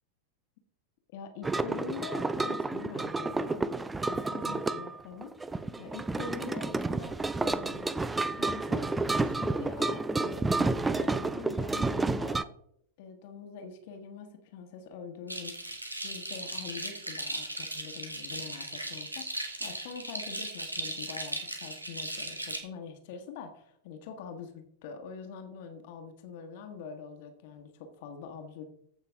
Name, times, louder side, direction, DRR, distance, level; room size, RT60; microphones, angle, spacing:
voice 1, 1.1-3.7 4.1-5.3 5.8-7.9 8.3-10.7 11.0-12.5 13.0-17.5 17.7-28.7, left 6 dB, 50° left, 5 dB, 1.4 m, -44 dB
sound 1, 1.4-12.4, right 3 dB, 10° right, 0.4 m, -30 dB
sound 2, 15.3-22.6, right 1 dB, 85° right, 1.5 m, -37 dB
14.5 x 5.6 x 3.5 m, 0.70 s
figure-of-eight pair, 90°, 0 cm